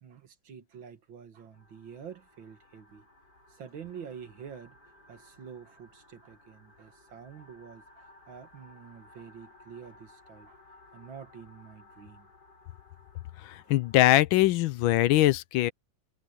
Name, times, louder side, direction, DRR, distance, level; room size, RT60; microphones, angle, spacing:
voice 1, 0.0-3.1 3.5-4.8 5.1-10.6 10.9-12.3, right 7 dB, 70° right, 2.4 m, -47 dB
sound 1, 1.5-14.0, left 2 dB, 50° left, 8.1 m, -58 dB
voice 2, 13.5-15.7, left 15 dB, 80° left, 1.4 m, -22 dB
omnidirectional pair, 2.2 m